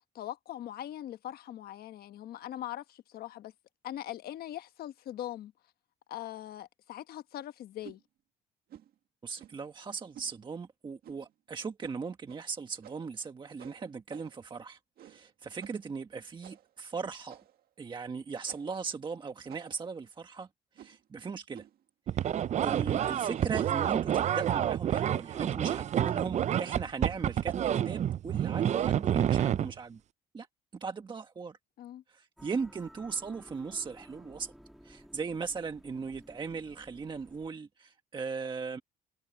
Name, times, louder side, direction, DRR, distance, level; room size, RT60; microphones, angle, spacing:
voice 1, 0.1-3.5 3.8-5.5 6.1-8.0 31.8-32.0, left 12 dB, 65° left, 1.3 m, -41 dB
sound 1, 7.8-8.0 8.7-8.9 9.4-9.7 10.1-10.3 11.0-11.3 11.8-12.0 12.3-12.4 12.8-13.2 13.6-14.5 15.0-15.3 15.6-15.8 16.4-16.7 17.3-17.7 18.5-18.8 19.5-19.9 20.7-21.1 21.5-21.8 22.6-22.9 23.3-23.7 24.1-24.4, right 11 dB, 65° right, 1.9 m, -52 dB
voice 2, 9.2-17.4 17.8-20.5 20.8-21.6 22.1-22.3 22.6-30.0 30.3-30.5 30.7-31.6 32.1-34.5 34.8-38.8, right 5 dB, 30° right, 1.4 m, -38 dB
sound 2, 22.1-29.7, right 10 dB, 45° right, 0.5 m, -29 dB
sound 3, 32.4-37.5, equal, ahead, 2.9 m, -55 dB
cardioid pair, 110°, 17 cm